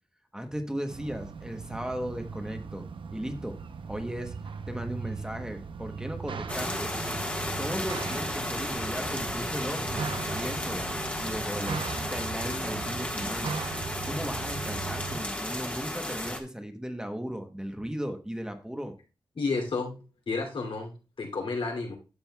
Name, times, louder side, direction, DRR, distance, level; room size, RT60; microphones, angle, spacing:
voice 1, 0.3-2.9 3.1-3.6 3.9-4.4 4.7-6.9 7.6-10.9 11.2-13.6 14.0-18.9, equal, 10° right, 5 dB, 0.9 m, -36 dB
sound 1, 0.9-15.2, right 5 dB, 70° right, 0.6 m, -38 dB
sound 2, 6.5-16.4, left 1 dB, 15° left, 1.4 m, -33 dB
voice 2, 19.3-22.0, left 4 dB, 75° left, 2 dB, 2.7 m, -32 dB
11.5 x 7.5 x 2.3 m, 0.31 s
wide cardioid pair, 160°, 9 cm